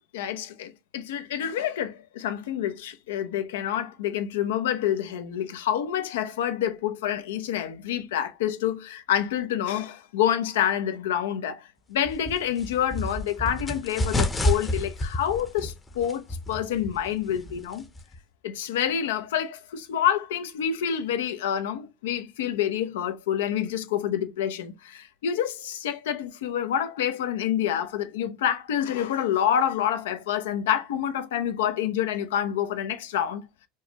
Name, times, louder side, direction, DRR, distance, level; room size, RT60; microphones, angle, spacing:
voice 1, 0.1-17.9 18.4-33.5, left 10 dB, 85° left, 0.7 m, -27 dB
sound 1, 12.0-18.2, left 1 dB, 15° left, 0.7 m, -30 dB
4.5 x 2.3 x 2.8 m
supercardioid pair, 115°, 0 cm